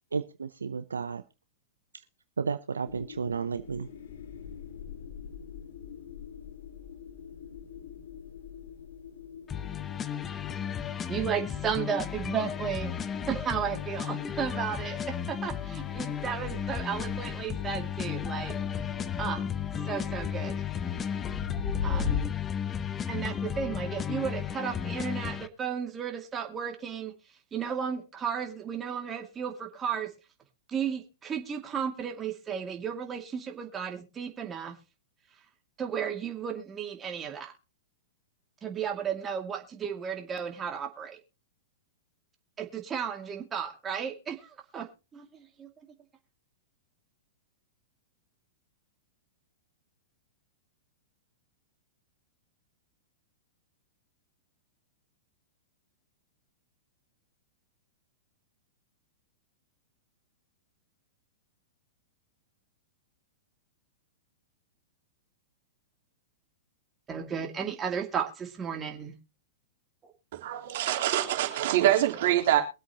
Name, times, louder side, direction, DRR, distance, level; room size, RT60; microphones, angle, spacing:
voice 1, 0.1-1.2 2.4-3.9, right 5 dB, 90° right, 0.7 m, -32 dB
sound 1, 2.9-22.3, left 6 dB, 70° left, 1.9 m, -41 dB
sound 2, 9.5-25.5, left 8 dB, 20° left, 0.9 m, -34 dB
voice 2, 11.1-12.9 13.3-18.5 19.2-19.5 19.9-20.6 21.8-22.2 23.1-27.1 27.5-30.1 30.7-34.7 35.8-37.5 38.6-41.2 42.6-45.7 67.1-69.1, right 7 dB, 20° right, 2.3 m, -34 dB
voice 3, 70.3-72.6, right 12 dB, 60° right, 3.3 m, -25 dB
23.0 x 8.2 x 2.9 m
hypercardioid pair, 110°, 0 cm